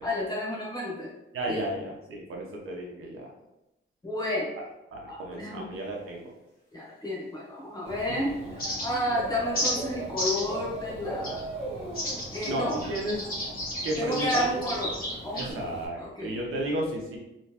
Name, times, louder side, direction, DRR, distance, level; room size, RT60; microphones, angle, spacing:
voice 1, 0.0-1.1 1.5-1.6 4.0-4.5 5.1-5.7 6.7-8.3 8.8-11.4 12.3-12.8 14.0-15.0 15.2-15.6 16.0-16.4, left 1 dB, 20° left, -4 dB, 0.9 m, -31 dB
voice 2, 1.3-3.3 4.9-6.3 8.3-8.4 12.5-13.2 13.8-14.6 15.3-17.2, right 1 dB, 85° right, -1 dB, 0.8 m, -33 dB
Dog / Bird, 7.9-15.9, right 1 dB, 30° right, 1.1 m, -40 dB
sound 1, 8.6-9.1 9.5-9.7 10.2-10.5 11.2-11.4 11.9-15.5, left 1 dB, 45° left, 1.4 m, -32 dB
3.2 x 3.0 x 2.9 m, 0.92 s
wide cardioid pair, 165°, 21 cm